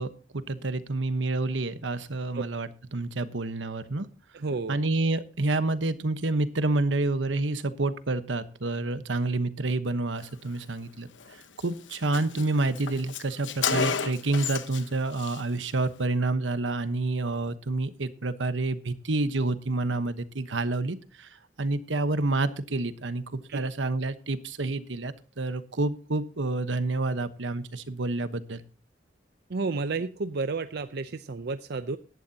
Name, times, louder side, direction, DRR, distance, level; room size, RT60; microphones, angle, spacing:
voice 1, 0.0-4.1 4.7-11.1 11.6-28.6, right 2 dB, 85° right, 12 dB, 1.1 m, -28 dB
voice 2, 4.3-4.8 23.5-23.6 29.5-32.0, right 3 dB, 60° right, 11 dB, 0.6 m, -31 dB
Car, 11.2-11.3 11.6-11.7 11.9-14.9 15.1-15.4, left 6 dB, 85° left, 1.1 m, -31 dB
16.5 x 11.5 x 2.8 m, 0.36 s
head